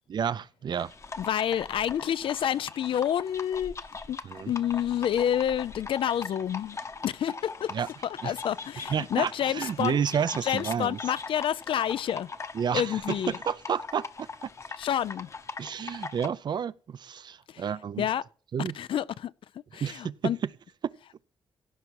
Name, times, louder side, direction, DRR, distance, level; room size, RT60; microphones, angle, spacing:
voice 1, 0.1-0.9 4.2-4.5 7.7-7.9 8.2-8.3 8.9-11.0 12.5-14.3 15.6-18.1 18.5-18.8 19.8-20.5 20.8-20.9, right 7 dB, 55° right, 0.5 m, -30 dB
sound 1, 0.8-16.3, left 4 dB, 35° left, 0.9 m, -41 dB
voice 2, 1.2-3.7 4.1-4.2 4.5-6.8 7.0-7.7 8.0-10.0 10.4-12.3 12.7-13.4 14.8-15.3 17.5-17.6 18.0-18.2 18.8-19.3 19.7-20.4, left 10 dB, 70° left, 0.5 m, -28 dB
15.5 x 5.9 x 4.7 m
cardioid pair, 100°, 9 cm